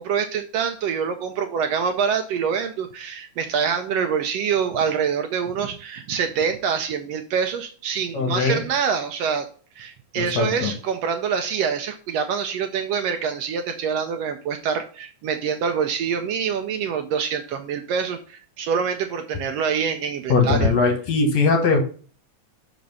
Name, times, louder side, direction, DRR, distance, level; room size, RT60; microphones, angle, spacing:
voice 1, 0.0-9.5 9.7-21.0, right 7 dB, 75° right, 7 dB, 1.5 m, -25 dB
voice 2, 8.1-8.6 10.2-10.7 20.3-21.8, left 4 dB, 70° left, 4 dB, 2.5 m, -20 dB
5.8 x 5.1 x 5.4 m, 0.41 s
omnidirectional pair, 3.3 m